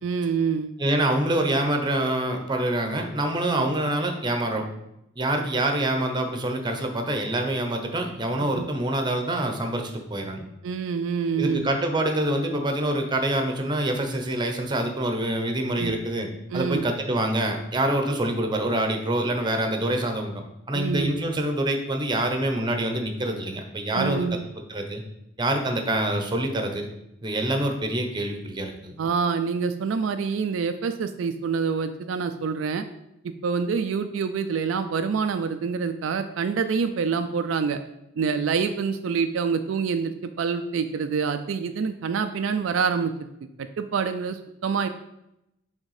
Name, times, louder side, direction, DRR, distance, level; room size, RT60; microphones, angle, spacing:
voice 1, 0.0-0.7 3.5-3.6 8.4-8.7 10.6-11.7 15.8-16.0 16.5-16.8 20.7-21.1 23.9-24.4 29.0-32.8 33.2-37.8 38.2-43.3 43.8-44.9, right 5 dB, 75° right, 8 dB, 0.4 m, -26 dB
voice 2, 0.8-4.7 5.2-10.4 11.4-16.3 16.5-24.2 24.7-25.0 25.4-26.9 27.2-28.9, right 1 dB, 25° right, 4 dB, 0.8 m, -26 dB
6.5 x 3.5 x 4.8 m, 0.85 s
head